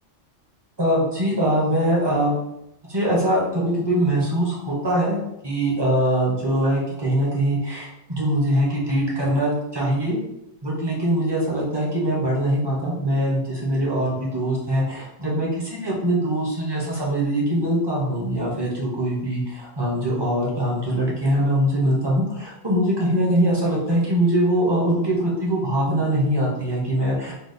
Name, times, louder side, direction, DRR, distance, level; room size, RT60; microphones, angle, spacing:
voice 1, 0.8-2.3 2.9-10.2 10.6-27.3, right 1 dB, 30° right, -4 dB, 0.5 m, -22 dB
3.7 x 2.2 x 2.5 m, 0.85 s
omnidirectional pair, 1.3 m